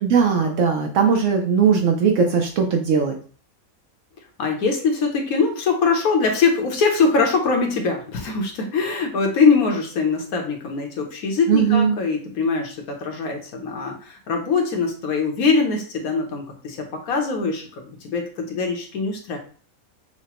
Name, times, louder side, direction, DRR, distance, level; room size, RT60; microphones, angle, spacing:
voice 1, 0.0-3.1 11.5-12.0, right 6 dB, 70° right, 3 dB, 0.9 m, -19 dB
voice 2, 4.4-19.4, left 4 dB, 75° left, 3 dB, 1.3 m, -22 dB
5.8 x 2.1 x 2.9 m, 0.39 s
omnidirectional pair, 1.5 m